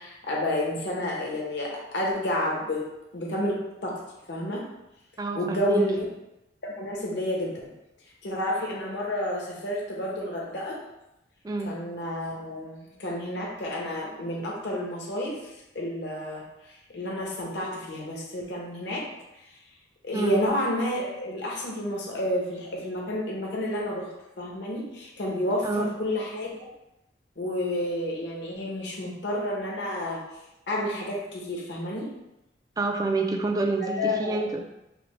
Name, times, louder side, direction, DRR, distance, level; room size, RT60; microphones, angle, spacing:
voice 1, 0.0-2.9 3.1-3.6 3.8-4.0 4.3-4.6 5.3-6.1 6.6-7.6 8.2-10.8 11.6-16.4 16.9-19.0 20.0-24.1 24.4-26.7 27.4-30.2 30.7-32.1 33.8-34.6, left 1 dB, 65° left, -3 dB, 0.9 m, -30 dB
voice 2, 5.2-5.8 11.4-11.8 20.1-20.4 25.6-25.9 32.8-34.6, right 3 dB, 20° right, 3 dB, 0.3 m, -27 dB
5.0 x 2.1 x 3.2 m, 0.89 s
head